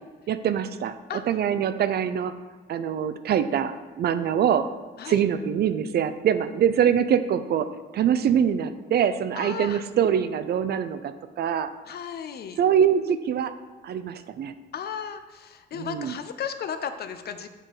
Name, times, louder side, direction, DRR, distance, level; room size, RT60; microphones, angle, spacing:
voice 1, 0.3-2.3 2.7-4.7 5.1-11.1 11.4-11.7 12.6-13.6 13.8-14.5 15.7-16.2, right 8 dB, 55° right, 12 dB, 0.4 m, -24 dB
voice 2, 9.4-9.8 11.9-12.6 14.7-17.5, left 7 dB, 55° left, 9 dB, 0.5 m, -34 dB
6.5 x 4.6 x 3.9 m, 1.3 s
cardioid pair, 90°, 20 cm